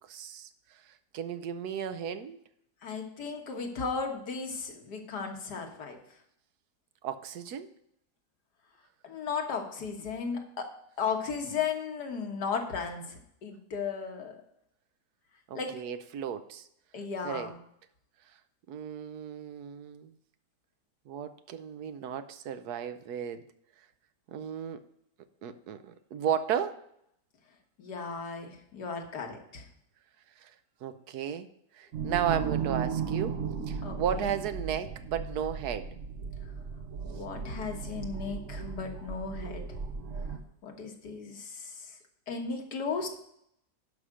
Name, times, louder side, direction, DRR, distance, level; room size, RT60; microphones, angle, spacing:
voice 1, 0.1-0.5 0.9-2.4 7.0-7.7 15.5-16.7 17.2-17.5 18.7-20.1 21.1-23.4 24.3-24.8 25.4-26.8 30.4-30.5 30.8-31.5 31.7-33.4 33.7-36.0, right 8 dB, 70° right, 11 dB, 1.2 m, -34 dB
voice 2, 2.8-6.0 9.0-10.7 11.0-14.4 15.5-15.8 16.9-17.5 27.8-29.6 33.8-34.0 37.0-39.7 40.6-41.7 42.3-43.1, left 5 dB, 75° left, 3 dB, 2.0 m, -35 dB
sound 1, 31.9-40.4, right 6 dB, 55° right, 1.1 m, -36 dB
11.0 x 5.7 x 5.0 m, 0.72 s
omnidirectional pair, 1.8 m